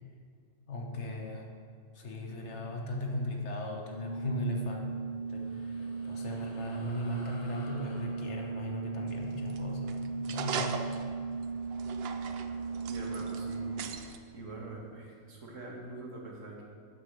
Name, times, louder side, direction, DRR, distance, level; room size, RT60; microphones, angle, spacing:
voice 1, 0.7-1.5 1.9-4.9 5.3-10.9, left 1 dB, 65° left, 1 dB, 1.4 m, -37 dB
Organ, 3.8-14.1, right 4 dB, 35° left, 1.2 m, -37 dB
sound 1, 5.1-11.9, left 2 dB, 85° left, 1.3 m, -54 dB
sound 2, 9.1-14.2, right 6 dB, 60° right, 0.7 m, -40 dB
voice 2, 12.9-13.8 14.3-16.6, right 2 dB, 75° right, -2 dB, 1.9 m, -44 dB
12.0 x 7.3 x 3.3 m, 2.3 s
omnidirectional pair, 1.3 m